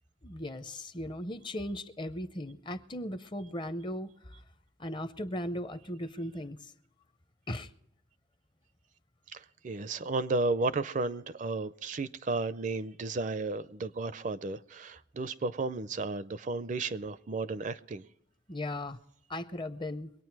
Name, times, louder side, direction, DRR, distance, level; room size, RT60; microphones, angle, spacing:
voice 1, 0.2-4.4 4.8-6.7 7.5-7.7 18.5-19.0 19.3-20.1, left 1 dB, 25° left, 0.6 m, -37 dB
voice 2, 9.3-18.0, right 3 dB, 40° right, 0.4 m, -33 dB
23.5 x 9.2 x 4.6 m
head